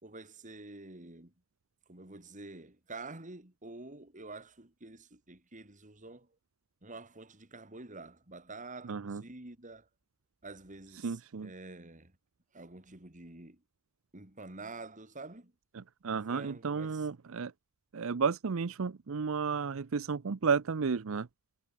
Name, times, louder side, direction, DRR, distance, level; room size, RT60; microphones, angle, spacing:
voice 1, 0.0-1.3 1.9-6.3 6.8-9.9 10.4-12.1 12.5-13.6 14.1-15.5 16.3-17.1, right 3 dB, 35° right, 3.0 m, -48 dB
voice 2, 8.8-9.2 10.9-11.5 15.7-17.5 17.9-21.3, right 5 dB, 70° right, 0.6 m, -32 dB
head